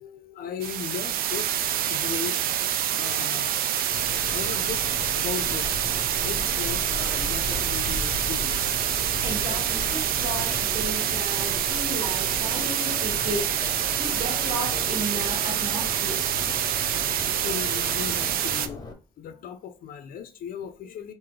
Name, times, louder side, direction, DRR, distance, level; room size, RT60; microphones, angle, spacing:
voice 1, 0.0-2.4 2.9-3.9 4.3-8.8 10.3-10.4 17.1-18.8 19.2-21.1, left 8 dB, 60° left, 0.5 m, -37 dB
sound 1, 0.6-18.7, right 10 dB, 60° right, 0.4 m, -26 dB
Subway metro underground, 3.9-18.9, left 3 dB, 25° left, 0.9 m, -37 dB
sound 2, 7.1-14.9, left 3 dB, 5° right, 0.6 m, -45 dB
voice 2, 9.2-13.4 14.0-16.2, right 1 dB, 30° right, 1.9 m, -34 dB
3.7 x 2.6 x 3.1 m
cardioid pair, 110°, 17 cm